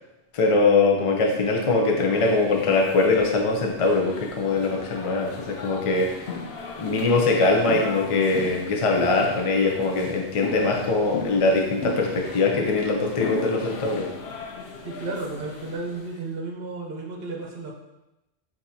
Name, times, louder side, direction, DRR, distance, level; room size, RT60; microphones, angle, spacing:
voice 1, 0.3-6.2 6.8-14.1, left 3 dB, 40° left, 0 dB, 0.5 m, -22 dB
sound 1, 1.5-16.2, left 4 dB, 65° left, 0.8 m, -37 dB
voice 2, 14.8-17.7, right 3 dB, 60° right, -1 dB, 0.9 m, -33 dB
6.1 x 2.8 x 2.7 m, 0.96 s
omnidirectional pair, 1.3 m